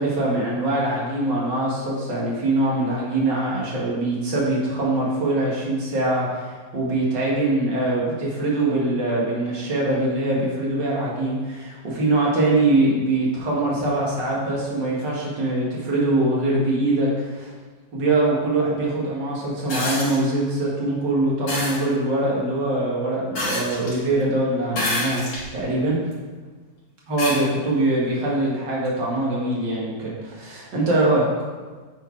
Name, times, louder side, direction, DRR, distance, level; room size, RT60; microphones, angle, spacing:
voice 1, 0.0-17.5 17.9-26.0 27.1-31.3, right 2 dB, 65° right, -4 dB, 2.5 m, -23 dB
sound 1, 19.7-20.2 21.5-21.8 23.4-24.0 24.7-25.5 26.1-26.2 27.2-27.4 28.9-29.0, left 1 dB, 70° left, 2.9 m, -26 dB
8.9 x 4.6 x 4.7 m, 1.4 s
omnidirectional pair, 2.1 m